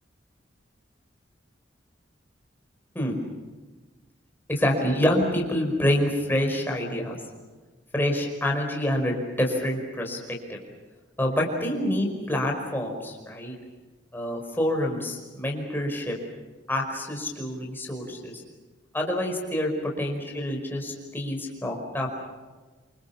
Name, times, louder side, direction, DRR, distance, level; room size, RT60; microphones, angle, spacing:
voice 1, 4.5-7.2 7.9-10.6 11.2-13.5 14.1-16.2 16.7-18.4 18.9-19.7 20.0-22.1, left 1 dB, 10° left, 1 dB, 5.1 m, -27 dB
27.5 x 25.5 x 7.2 m, 1.3 s
head